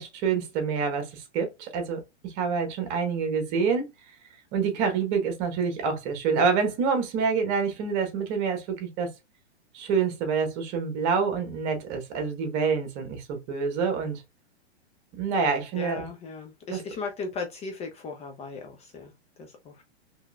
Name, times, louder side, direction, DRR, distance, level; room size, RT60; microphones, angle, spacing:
voice 1, 0.0-3.8 4.5-9.1 9.7-14.2 15.1-16.0 16.7-16.8, right 5 dB, 40° right, 1.4 m, -27 dB
voice 2, 15.7-19.1 19.4-19.8, left 4 dB, 20° left, 0.5 m, -37 dB
3.6 x 3.2 x 2.2 m
hypercardioid pair, 120°, 33 cm